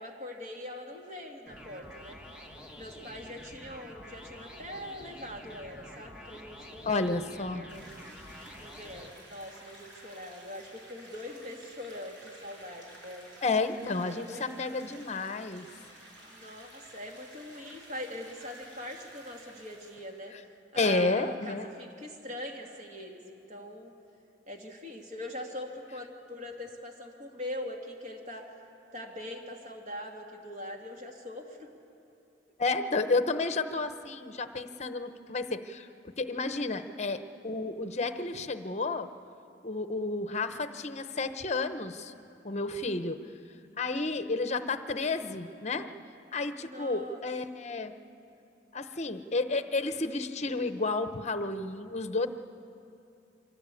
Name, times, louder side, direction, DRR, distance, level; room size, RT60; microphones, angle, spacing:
voice 1, 0.0-2.2 2.7-8.0 8.6-13.3 14.0-14.4 16.3-20.3 20.7-23.9 24.5-28.5 28.9-31.7 32.5-32.6 46.7-47.2, left 1 dB, 40° right, 1 dB, 2.4 m, -42 dB
sound 1, 1.5-9.1, left 1 dB, 5° right, 1.6 m, -48 dB
voice 2, 6.8-7.6 13.4-15.7 20.3-20.4 20.7-21.7 32.6-39.1 39.6-42.1 42.4-43.2 43.8-45.9 46.3-47.9 48.7-52.3, left 3 dB, 40° left, 10 dB, 0.9 m, -31 dB
sound 2, 7.7-20.3, right 1 dB, 80° right, 6.9 m, -52 dB
24.5 x 16.5 x 8.4 m, 2.7 s
head